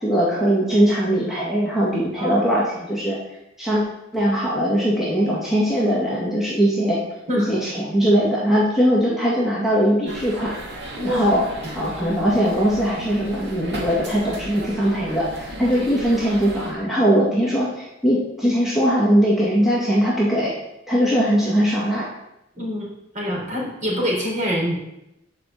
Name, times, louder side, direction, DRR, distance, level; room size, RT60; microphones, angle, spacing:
voice 1, 0.0-3.2 3.6-3.8 4.1-7.0 7.3-10.5 11.0-11.4 11.7-20.5 20.9-22.1, equal, ahead, -8 dB, 1.9 m, -20 dB
voice 2, 2.2-2.5 7.3-7.5 10.9-11.4 11.6-11.7 22.5-22.9 23.1-24.8, equal, 40° right, -3 dB, 4.0 m, -25 dB
sound 1, 10.1-16.7, right 1 dB, 60° right, 2.4 m, -36 dB
8.4 x 5.6 x 7.6 m, 0.87 s
head